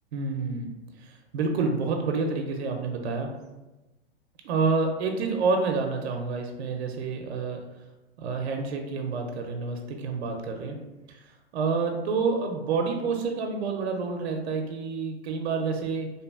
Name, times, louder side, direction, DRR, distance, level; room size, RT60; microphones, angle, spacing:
voice 1, 0.1-0.7 1.0-3.3 4.4-7.6 8.2-10.8 11.1-11.2 11.5-16.1, right 4 dB, 75° right, 3 dB, 0.5 m, -28 dB
2.7 x 2.5 x 2.3 m, 1.1 s
supercardioid pair, 160°, 32 cm